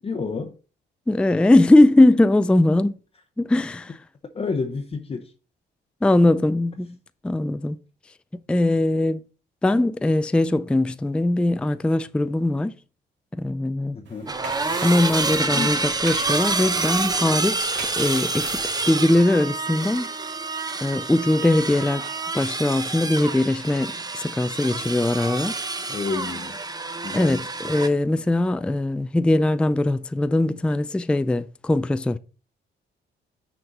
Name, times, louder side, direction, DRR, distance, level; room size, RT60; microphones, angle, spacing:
voice 1, 0.0-0.5 4.3-5.3 13.9-14.3 15.5-15.8 25.9-26.6 27.0-27.5, left 4 dB, 30° left, 0.8 m, -29 dB
voice 2, 1.1-2.9 3.4-4.0 6.0-7.0 7.2-7.8 8.5-9.2 9.6-12.7 13.4-14.0 14.8-20.1 20.8-25.6 27.1-32.2, left 1 dB, 5° left, 0.4 m, -20 dB
sound 1, 14.1-19.2, right 5 dB, 70° right, 2.0 m, -38 dB
sound 2, 14.3-27.9, right 3 dB, 20° right, 0.8 m, -28 dB
6.4 x 4.4 x 5.3 m
cardioid pair, 90°, 20 cm